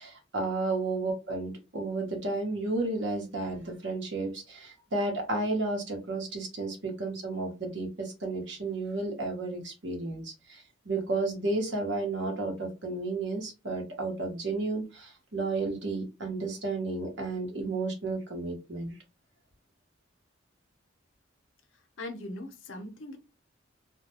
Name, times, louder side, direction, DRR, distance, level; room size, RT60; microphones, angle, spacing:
voice 1, 0.0-18.9, right 2 dB, 65° right, 0.9 m, -32 dB
voice 2, 22.0-23.2, left 1 dB, 80° left, 0.6 m, -40 dB
2.2 x 2.2 x 2.9 m
head